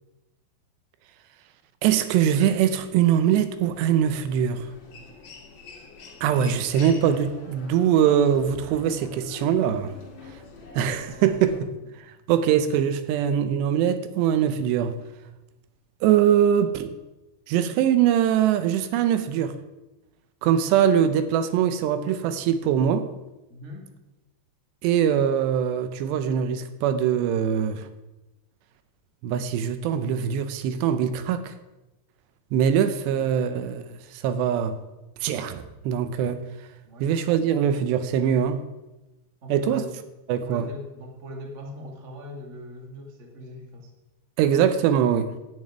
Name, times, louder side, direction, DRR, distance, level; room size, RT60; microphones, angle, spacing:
voice 1, 1.8-4.7 6.2-10.0 10.8-11.7 12.0-15.0 16.0-17.0 17.5-19.6 20.4-23.1 24.8-27.9 29.2-31.5 32.5-34.8 35.2-36.7 37.0-38.6 39.5-39.8 40.3-40.7 44.4-45.4, right 9 dB, 80° right, 11 dB, 2.8 m, -22 dB
Human voice, 3.5-11.6, left 3 dB, 50° left, 3.7 m, -44 dB
voice 2, 23.5-23.9 36.8-37.1 39.4-39.9 40.4-43.9, equal, 60° right, 0 dB, 0.7 m, -40 dB
10.5 x 6.7 x 9.1 m, 1.0 s
omnidirectional pair, 5.2 m